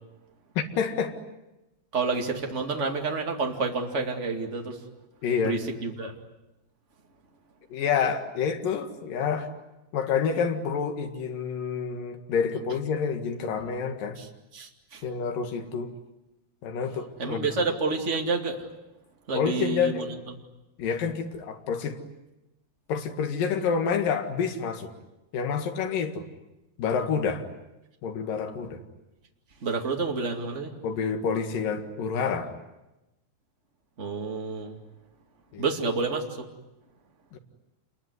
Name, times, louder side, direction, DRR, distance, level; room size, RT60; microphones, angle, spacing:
voice 1, 0.6-1.1 5.2-5.6 7.7-9.5 9.9-14.2 15.0-15.9 16.6-17.5 19.3-20.2 20.8-22.0 22.9-24.9 25.3-26.3 26.8-27.5 28.0-28.8 30.8-32.5 35.5-35.6 37.3-37.4, left 6 dB, 60° left, 5 dB, 3.3 m, -28 dB
voice 2, 1.9-4.8 5.4-6.1 14.2-14.3 14.5-15.0 17.2-18.6 19.3-20.1 29.6-30.7 34.0-34.8 35.6-36.5, right 4 dB, 25° right, 2 dB, 1.7 m, -29 dB
28.0 x 22.0 x 9.6 m, 0.97 s
omnidirectional pair, 4.9 m